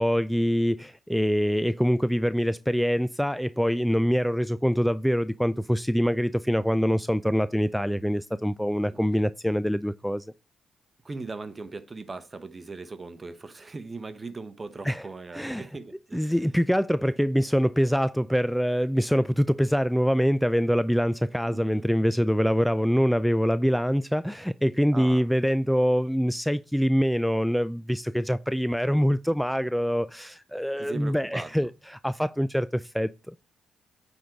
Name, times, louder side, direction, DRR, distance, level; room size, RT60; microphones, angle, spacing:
voice 1, 0.0-10.3 14.8-15.0 15.3-15.6 16.1-33.3, equal, ahead, 0.3 m, -24 dB
voice 2, 8.9-9.3 11.0-16.5 21.5-21.9 24.9-25.2 30.8-31.7, right 3 dB, 30° right, 1.1 m, -39 dB
9.3 x 3.9 x 4.5 m
hypercardioid pair, 45°, 0 cm